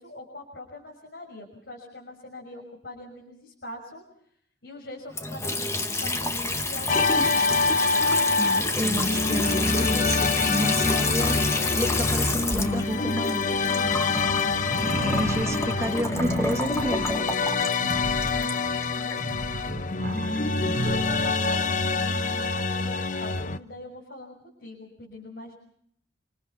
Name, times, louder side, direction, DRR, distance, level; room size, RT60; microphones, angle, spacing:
voice 1, 0.0-4.0 4.6-7.6 17.9-19.6 20.9-25.5, left 1 dB, 65° left, -1 dB, 6.2 m, -44 dB
Water tap faucet / Sink (filling or washing) / Trickle dribble, 5.1-19.2, left 2 dB, 15° left, 1.5 m, -29 dB
sound 1, 6.9-23.6, left 4 dB, 45° left, 0.9 m, -26 dB
voice 2, 8.4-11.4 11.7-13.6 15.0-17.3, equal, 15° right, 6 dB, 1.5 m, -30 dB
sound 2, 14.6-21.4, right 2 dB, 45° right, 1.2 m, -33 dB
26.5 x 26.0 x 5.7 m, 0.68 s
head